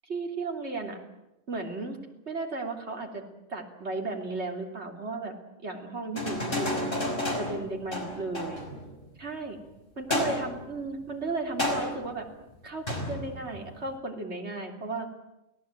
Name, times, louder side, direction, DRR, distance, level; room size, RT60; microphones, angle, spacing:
voice 1, 0.0-1.0 1.5-2.0 2.3-3.2 3.5-5.3 5.6-6.8 7.4-8.6 9.2-9.6 10.0-12.3 12.6-15.1, right 3 dB, 50° right, 2 dB, 3.5 m, -34 dB
sound 1, 6.1-9.0 10.1-10.8 11.6-12.1 12.9-13.7, left 1 dB, 40° left, 5.5 m, -31 dB
29.0 x 18.0 x 9.0 m, 0.93 s
omnidirectional pair, 1.4 m